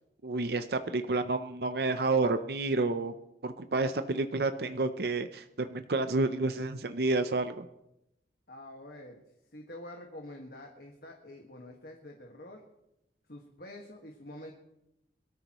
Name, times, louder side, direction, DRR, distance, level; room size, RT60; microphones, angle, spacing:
voice 1, 0.2-3.1 3.4-7.7, right 3 dB, 60° right, 9 dB, 0.6 m, -30 dB
voice 2, 8.5-9.2 9.5-12.6 13.3-14.5, left 1 dB, 60° left, 1 dB, 1.7 m, -47 dB
22.5 x 13.0 x 3.1 m, 0.85 s
head